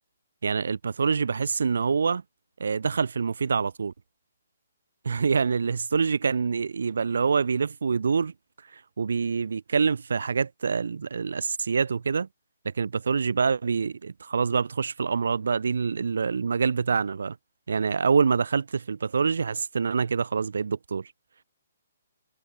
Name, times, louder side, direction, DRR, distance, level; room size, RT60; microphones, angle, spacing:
voice 1, 0.4-2.2 2.6-3.9 5.0-8.3 8.7-12.3 12.6-17.4 17.7-21.1, right 5 dB, 70° right, 7.0 m, -26 dB
figure-of-eight pair, 140°, 0 cm